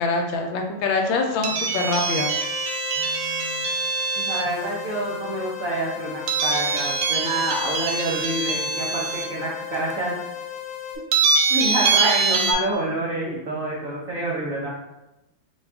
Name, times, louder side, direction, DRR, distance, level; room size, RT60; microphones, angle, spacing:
voice 1, 0.0-2.3, left 3 dB, 75° left, 3 dB, 1.3 m, -24 dB
sound 1, 1.4-4.5 6.3-9.2 9.9-10.0 11.1-12.5, right 4 dB, 85° right, 1.4 m, -24 dB
sound 2, 2.0-11.0, left 9 dB, 50° left, 0.7 m, -36 dB
voice 2, 4.2-10.1 11.5-14.7, right 2 dB, 60° right, -4 dB, 0.9 m, -27 dB
5.1 x 2.3 x 3.4 m, 0.93 s
omnidirectional pair, 2.2 m